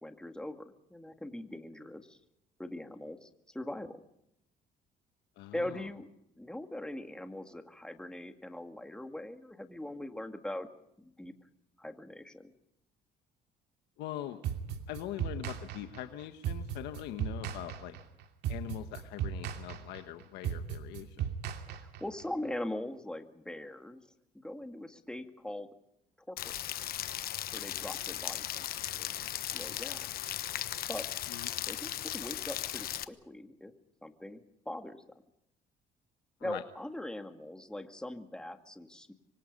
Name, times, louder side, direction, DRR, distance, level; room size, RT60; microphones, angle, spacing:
voice 1, 0.0-2.2 2.6-4.0 5.5-6.1 6.4-10.7 11.0-11.3 11.8-12.5 21.7-24.0 24.4-25.7 26.3-26.6 27.5-30.1 30.9-31.1 31.7-33.7 34.0-35.0 36.4-39.1, left 1 dB, 5° left, 6 dB, 2.1 m, -41 dB
voice 2, 5.4-5.9 14.0-14.4 14.9-18.0 18.5-21.3 31.3-31.5 36.4-36.6, left 13 dB, 90° left, 8 dB, 1.3 m, -42 dB
sound 1, 14.4-22.2, right 9 dB, 75° right, 2.6 m, -37 dB
Rain, 26.4-33.0, left 12 dB, 65° left, 1.1 m, -37 dB
26.5 x 24.0 x 5.4 m, 0.78 s
cardioid pair, 110°, 17 cm